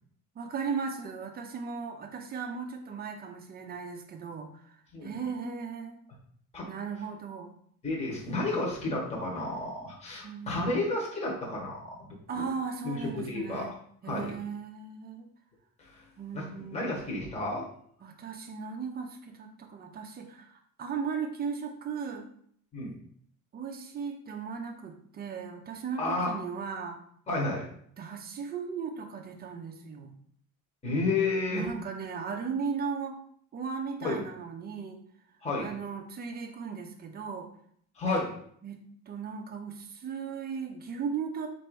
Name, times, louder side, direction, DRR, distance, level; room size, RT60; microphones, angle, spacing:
voice 1, 0.4-4.6 5.0-6.0 6.6-7.6 10.2-10.5 12.3-13.7 14.0-15.3 16.2-17.2 18.0-22.3 23.5-27.0 28.0-30.1 31.5-33.2 33.5-35.0 35.6-37.5 38.6-38.8 39.1-41.5, right 6 dB, 25° right, 4 dB, 0.5 m, -37 dB
voice 2, 7.8-12.4 12.8-13.7 14.1-14.3 15.8-16.0 16.3-16.5 16.7-17.6 22.7-22.9 26.0-26.3 27.3-27.6 30.8-31.6 34.0-34.2 35.4-35.7 38.0-38.3, left 2 dB, 20° left, -3 dB, 1.0 m, -31 dB
4.4 x 2.6 x 4.5 m, 0.64 s
cardioid pair, 180°, 35 cm